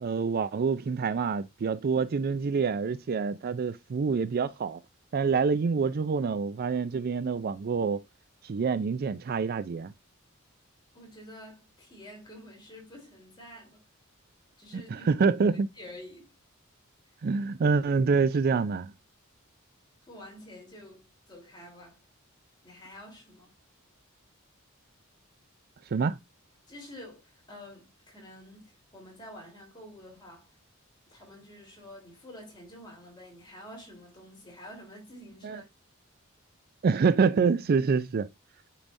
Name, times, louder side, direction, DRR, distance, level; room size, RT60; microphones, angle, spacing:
voice 1, 0.0-4.8 5.1-8.0 8.4-9.9 14.7-15.7 17.2-18.9 25.9-26.2 35.4-35.6 36.8-38.3, right 5 dB, 45° right, 0.4 m, -26 dB
voice 2, 10.9-13.8 14.6-15.1 15.5-16.3 20.0-22.0 22.6-23.6 26.7-30.5 31.1-35.6, left 1 dB, 20° left, 3.5 m, -48 dB
8.7 x 4.7 x 2.6 m
head